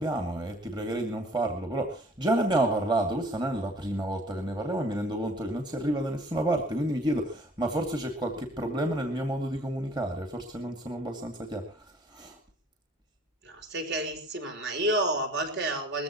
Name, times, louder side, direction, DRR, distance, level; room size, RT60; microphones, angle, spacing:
voice 1, 0.0-12.4, right 1 dB, 20° right, 4 dB, 2.3 m, -30 dB
voice 2, 13.4-16.0, right 1 dB, 55° right, 4 dB, 4.7 m, -30 dB
21.0 x 16.0 x 3.0 m, 0.38 s
head